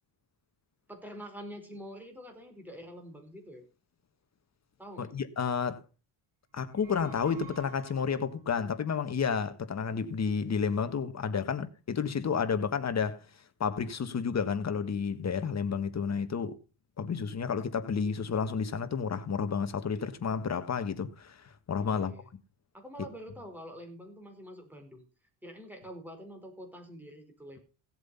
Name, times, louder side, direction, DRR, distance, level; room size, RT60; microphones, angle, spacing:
voice 1, 0.9-3.6 4.8-5.1 11.4-11.6 21.8-22.2 22.7-25.0 25.4-27.6, equal, 5° right, 4.9 m, -46 dB
voice 2, 5.0-5.8 6.5-13.2 13.6-16.6 17.0-22.1, left 6 dB, 35° left, 1.5 m, -31 dB
sound 1, 6.6-8.5, right 5 dB, 60° right, 4.4 m, -52 dB
16.5 x 7.9 x 5.6 m
cardioid pair, 120°, 48 cm